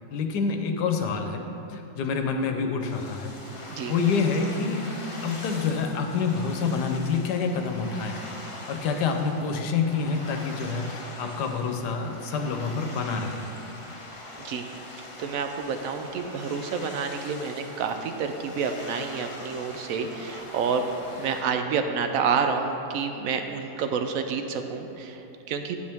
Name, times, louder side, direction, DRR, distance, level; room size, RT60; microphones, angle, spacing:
voice 1, 0.1-1.4 1.7-3.3 3.9-4.8 5.2-8.3 8.7-13.4, left 5 dB, 80° left, 4 dB, 1.3 m, -27 dB
sound 1, 2.8-21.4, left 2 dB, 35° left, 0.5 m, -42 dB
voice 2, 15.2-20.8 21.2-25.8, right 6 dB, 70° right, 6 dB, 0.9 m, -29 dB
9.3 x 8.4 x 3.5 m, 3.0 s
omnidirectional pair, 1.8 m